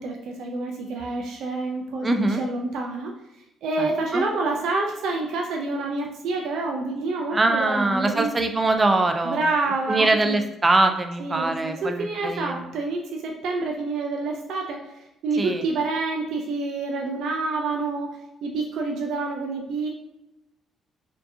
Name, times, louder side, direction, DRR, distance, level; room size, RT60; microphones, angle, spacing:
voice 1, 0.0-2.1 2.4-3.1 3.6-8.4 9.2-10.4 11.2-14.9 15.2-19.9, right 3 dB, 70° right, 1 dB, 0.5 m, -28 dB
voice 2, 2.0-2.4 3.8-3.9 4.1-4.2 7.3-9.4 9.9-12.6 15.4-15.6, right 2 dB, 20° right, 6 dB, 0.4 m, -22 dB
4.4 x 2.8 x 2.7 m, 0.89 s
cardioid pair, 135°, 0 cm